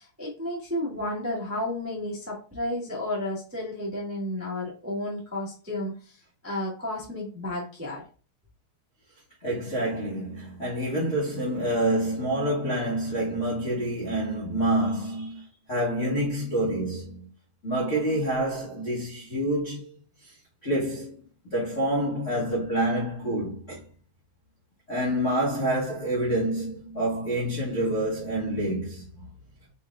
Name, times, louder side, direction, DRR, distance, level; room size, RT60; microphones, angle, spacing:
voice 1, 0.0-8.0, left 1 dB, 15° right, 0.5 m, -32 dB
voice 2, 9.4-17.3 17.6-20.4 20.6-21.2 21.4-23.9 24.9-29.3, right 1 dB, 60° left, 0.8 m, -27 dB
4.7 x 4.0 x 2.5 m
omnidirectional pair, 3.3 m